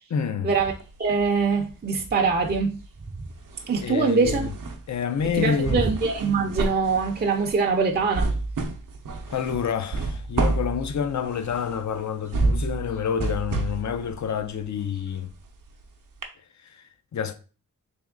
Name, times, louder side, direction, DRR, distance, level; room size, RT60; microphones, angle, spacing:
voice 1, 0.1-0.5 3.8-4.5 4.9-5.9 9.3-15.3 16.6-17.3, left 7 dB, 55° left, 0.5 m, -28 dB
sound 1, 0.6-1.7 2.0-15.8 16.2-16.3, right 3 dB, 65° right, 0.7 m, -30 dB
voice 2, 1.0-2.8 3.7-4.5 5.4-8.3, right 4 dB, 30° right, 0.5 m, -23 dB
3.5 x 3.0 x 3.7 m
wide cardioid pair, 80°, 34 cm